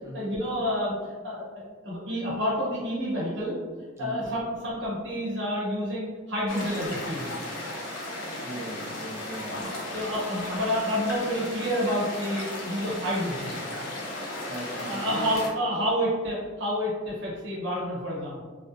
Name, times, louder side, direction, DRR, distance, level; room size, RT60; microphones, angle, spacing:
voice 1, 0.1-1.0 1.2-3.5 4.0-7.3 9.5-13.6 14.2-14.3 14.7-18.4, equal, 60° right, -6 dB, 0.7 m, -29 dB
sound 1, 6.5-15.5, left 1 dB, 80° left, 0.6 m, -35 dB
voice 2, 8.4-9.7 14.5-15.3, right 1 dB, 15° right, -3 dB, 0.3 m, -39 dB
2.7 x 2.0 x 2.4 m, 1.4 s
head